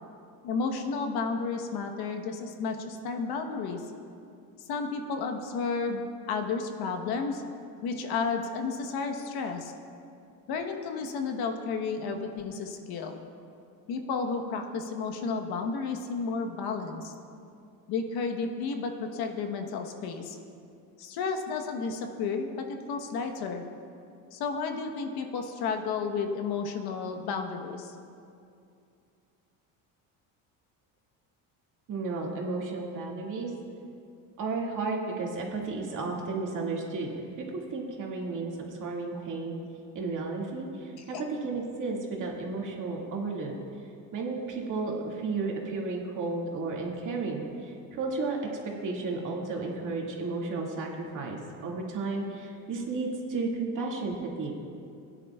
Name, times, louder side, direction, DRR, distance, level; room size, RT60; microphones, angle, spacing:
voice 1, 0.4-3.8 4.7-7.4 7.8-9.7 10.5-13.2 13.9-17.1 17.9-20.4 21.0-23.6 24.3-27.9 41.0-41.2, left 4 dB, 70° left, 4 dB, 1.1 m, -32 dB
voice 2, 31.9-33.5 34.4-39.6 39.9-43.6 44.1-48.4 48.8-50.9 51.1-54.6, right 3 dB, 50° right, -1 dB, 2.1 m, -33 dB
17.0 x 10.0 x 2.3 m, 2.5 s
cardioid pair, 110°, 40 cm